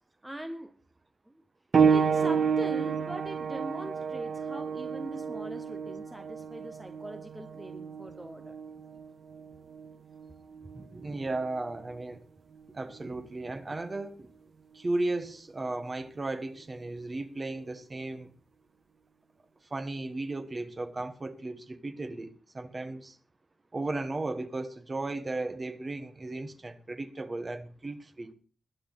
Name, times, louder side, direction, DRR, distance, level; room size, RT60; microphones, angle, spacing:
voice 1, 0.2-0.8 1.3-1.4 1.9-8.5, right 1 dB, 10° right, 0.8 m, -41 dB
sound 1, 1.7-12.0 12.9-13.0 13.8-13.9, right 6 dB, 50° right, 0.6 m, -30 dB
voice 2, 10.7-12.2 12.7-14.3 14.7-18.3 19.7-23.2 23.7-28.3, right 2 dB, 25° right, 1.3 m, -35 dB
21.5 x 8.7 x 4.0 m
wide cardioid pair, 175°, 0 cm